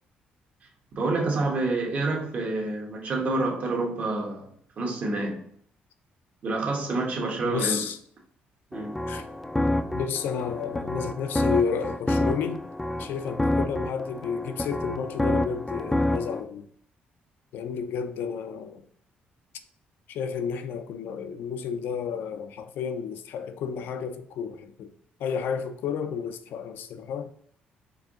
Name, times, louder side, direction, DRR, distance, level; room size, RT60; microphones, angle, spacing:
voice 1, 0.9-4.5 4.8-5.4 6.4-7.9 8.7-9.0, right 2 dB, 50° right, 1.2 m, -28 dB
voice 2, 7.4-8.0 9.1-9.3 9.9-12.6 13.0-16.7 17.5-18.8 20.1-24.9 25.2-27.3, left 7 dB, 80° left, 0.5 m, -31 dB
sound 1, 8.7-16.4, left 1 dB, 10° left, 0.3 m, -28 dB
4.7 x 2.7 x 3.7 m
cardioid pair, 95°, 3 cm